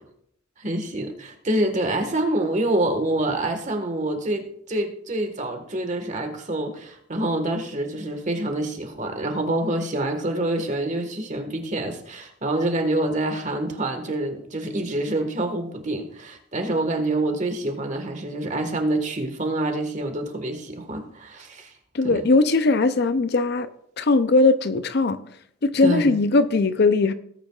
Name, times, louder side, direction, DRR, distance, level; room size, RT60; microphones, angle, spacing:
voice 1, 0.6-21.7 22.0-22.3 25.8-26.1, right 1 dB, 35° right, 1.5 m, -26 dB
voice 2, 21.9-23.7 24.0-25.2 25.6-27.1, left 3 dB, 50° left, 0.5 m, -19 dB
18.5 x 9.0 x 2.4 m
head